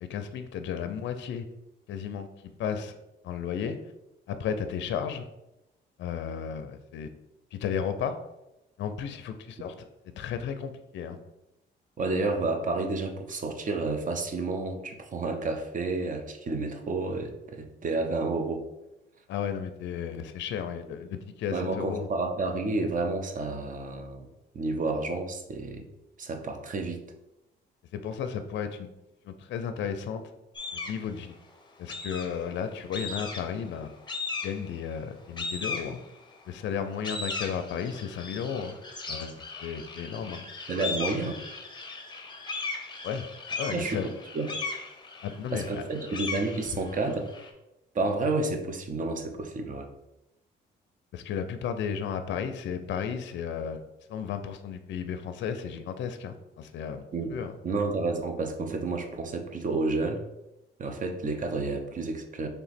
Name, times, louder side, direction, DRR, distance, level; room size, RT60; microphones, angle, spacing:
voice 1, 0.0-1.5 1.9-3.0 3.2-3.8 4.3-5.3 6.0-7.1 7.5-8.2 8.8-9.7 10.1-11.2 19.3-22.1 27.9-28.9 29.2-30.2 30.7-31.3 31.8-33.9 34.4-36.0 36.5-38.8 39.1-40.4 43.0-43.3 43.6-44.1 45.2-45.7 51.1-53.8 54.1-57.5, left 7 dB, 65° left, 9 dB, 0.4 m, -34 dB
voice 2, 12.0-18.7 21.5-24.3 24.5-25.8 26.2-27.0 40.7-41.4 43.7-44.0 44.3-44.5 45.5-47.2 47.9-49.9 57.1-57.3 57.6-60.2 60.8-62.5, right 3 dB, 40° right, 5 dB, 0.7 m, -30 dB
sound 1, 30.5-31.1 31.9-32.5 32.9-33.6 34.1-34.8 35.4-36.3 36.8-47.5, left 4 dB, 20° left, 0.7 m, -37 dB
3.4 x 2.9 x 4.1 m, 0.90 s
cardioid pair, 90°, 20 cm